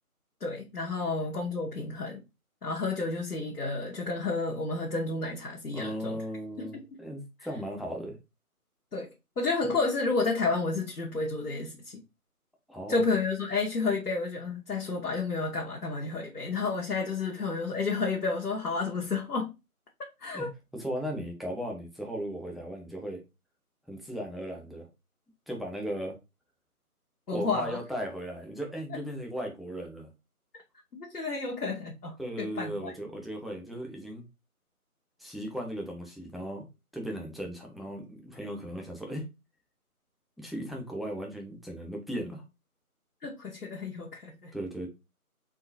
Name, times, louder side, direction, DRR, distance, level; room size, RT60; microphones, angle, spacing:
voice 1, 0.4-2.2 2.6-6.2 6.6-6.8 8.9-9.1 9.4-12.0 12.9-19.5 20.2-20.5 27.3-27.8 28.9-29.0 30.9-32.9 43.2-44.5, left 3 dB, 80° left, 1.0 m, -31 dB
voice 2, 5.7-8.2 12.7-13.0 20.3-20.5 20.7-23.2 23.9-24.9 25.5-26.2 27.3-30.1 32.2-34.2 35.2-36.7 36.9-39.2 40.4-42.4 44.5-44.9, equal, ahead, 0.5 m, -37 dB
3.6 x 3.0 x 2.6 m
figure-of-eight pair, 180°, 45 cm